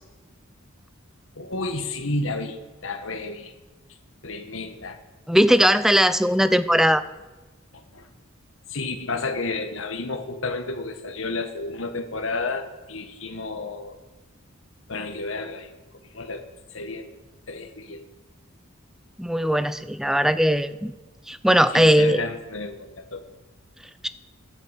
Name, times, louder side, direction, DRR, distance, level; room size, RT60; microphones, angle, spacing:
voice 1, 1.3-3.5 4.2-5.0 7.7-8.1 8.7-14.0 14.9-15.7 16.1-16.4 16.7-17.1 17.5-18.0 21.7-23.2, left 3 dB, 65° left, 7 dB, 1.5 m, -31 dB
voice 2, 5.3-7.0 19.2-20.9 21.3-22.2 24.0-24.1, equal, ahead, 13 dB, 0.5 m, -19 dB
12.0 x 11.0 x 8.3 m, 1.2 s
head